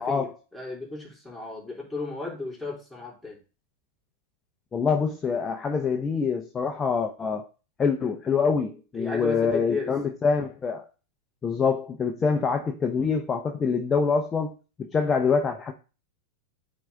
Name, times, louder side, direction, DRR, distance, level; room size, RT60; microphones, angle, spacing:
voice 1, 0.0-0.3 4.7-7.5 7.8-10.9 11.4-14.5 14.8-15.7, left 5 dB, 20° left, 0.8 m, -25 dB
voice 2, 0.5-3.4 8.9-9.9, left 3 dB, ahead, 3.1 m, -33 dB
9.1 x 4.0 x 3.4 m
hypercardioid pair, 105°, 0 cm